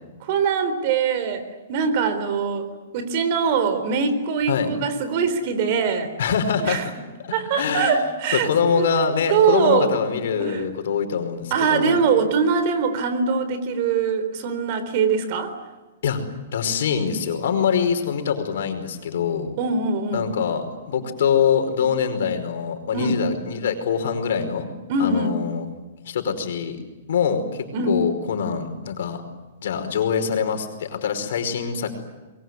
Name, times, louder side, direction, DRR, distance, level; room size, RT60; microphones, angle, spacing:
voice 1, 0.2-6.1 6.6-6.9 7.3-8.5 8.8-8.9 9.3-10.0 10.4-10.6 11.5-15.5 19.6-20.3 22.9-23.2 24.9-25.3 27.7-28.0, right 5 dB, 40° right, 10 dB, 4.0 m, -22 dB
voice 2, 6.2-6.9 7.2-8.0 8.3-12.0 16.0-16.2 16.5-19.5 20.1-24.7 25.0-25.7 26.0-26.8 27.1-29.2 29.6-31.9, left 7 dB, 65° left, 7 dB, 5.1 m, -24 dB
25.0 x 22.5 x 9.7 m, 1.2 s
hypercardioid pair, 160°, 0 cm